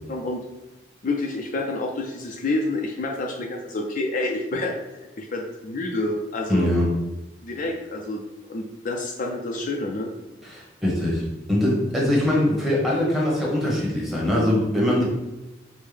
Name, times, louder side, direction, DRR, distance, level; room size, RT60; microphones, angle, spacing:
voice 1, 0.1-0.4 1.0-4.7 5.2-6.7 7.4-8.2 8.5-10.1, left 2 dB, 50° left, 1 dB, 0.4 m, -28 dB
voice 2, 6.5-6.9 10.4-15.0, left 1 dB, ahead, -4 dB, 1.0 m, -22 dB
5.3 x 2.1 x 3.2 m, 1.0 s
head